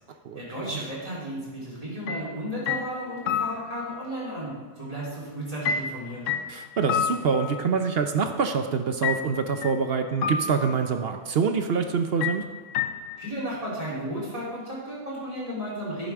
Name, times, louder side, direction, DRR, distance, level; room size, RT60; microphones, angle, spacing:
voice 1, 0.3-6.2 13.2-16.1, equal, 25° right, -6 dB, 3.6 m, -34 dB
sound 1, 2.1-2.3 2.7-4.0 5.6-8.0 9.0-9.8 10.2-11.0 12.2-13.3, left 7 dB, 65° left, 1.0 m, -30 dB
voice 2, 6.5-12.5, right 5 dB, 55° right, 7 dB, 0.7 m, -25 dB
11.0 x 10.5 x 3.6 m, 1.3 s
omnidirectional pair, 1.5 m